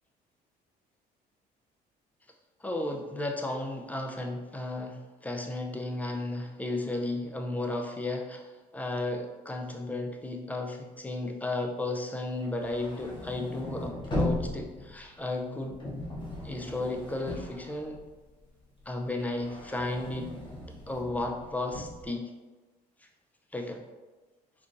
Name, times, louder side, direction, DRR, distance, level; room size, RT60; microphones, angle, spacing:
voice 1, 2.6-15.8 16.4-18.0 18.9-20.3 20.9-22.3 23.5-23.8, left 2 dB, 10° left, 2 dB, 0.4 m, -34 dB
sound 1, 12.3-18.4 18.8-22.1, left 1 dB, 30° left, 0.8 m, -37 dB
3.7 x 2.8 x 2.5 m, 1.2 s
cardioid pair, 110°, 17 cm